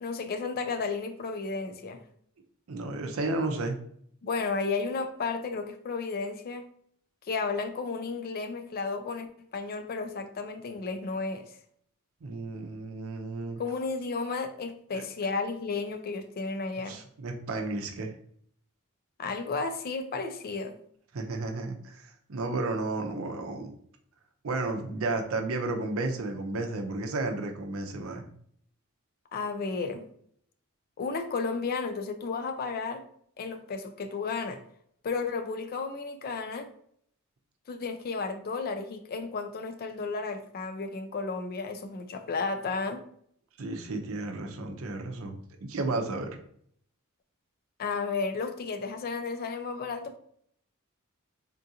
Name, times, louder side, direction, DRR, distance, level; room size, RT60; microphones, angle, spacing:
voice 1, 0.0-2.0 4.2-6.7 7.2-11.6 13.6-17.0 19.2-20.8 29.3-30.1 31.0-33.0 33.4-34.6 35.0-36.7 37.7-43.0 47.8-50.2, left 4 dB, 45° left, 0.3 m, -33 dB
voice 2, 2.7-3.8 12.2-13.6 14.9-15.0 16.9-18.1 21.1-23.7 24.4-28.3 43.6-46.3, right 2 dB, 70° right, 0.5 m, -33 dB
3.7 x 2.4 x 2.7 m
head